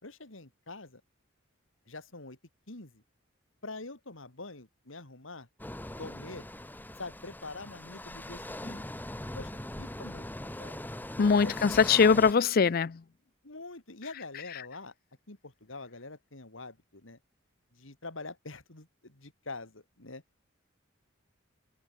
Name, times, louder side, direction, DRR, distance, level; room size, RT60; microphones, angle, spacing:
voice 1, 0.0-1.0 1.9-2.4 2.7-3.0 3.6-5.5 6.0-6.5 7.0-8.8 9.3-9.5 9.8-10.8 11.4-11.8 13.4-14.9 15.3-17.2 17.7-20.2, left 3 dB, 75° left, 3.1 m, -45 dB
sound 1, 5.6-12.3, left 1 dB, 10° left, 1.3 m, -41 dB
voice 2, 11.2-13.0, left 5 dB, 50° left, 0.5 m, -22 dB
head